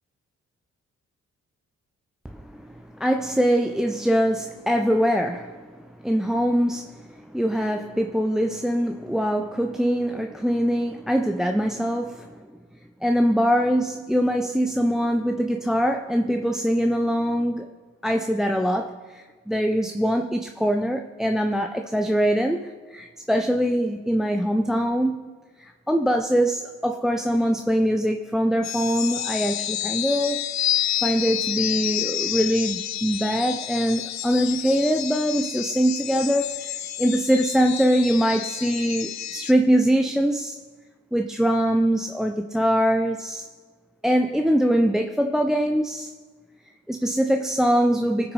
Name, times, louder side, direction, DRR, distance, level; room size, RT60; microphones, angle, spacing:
voice 1, 2.2-5.7 6.0-12.5 13.0-17.7 18.0-25.3 25.6-30.5 31.0-40.6 41.1-43.5 44.0-46.1 46.9-48.3, equal, ahead, 0.6 m, -23 dB
sound 1, 28.6-39.5, left 12 dB, 65° left, 0.6 m, -29 dB
18.5 x 6.1 x 4.9 m
cardioid pair, 70°, 30 cm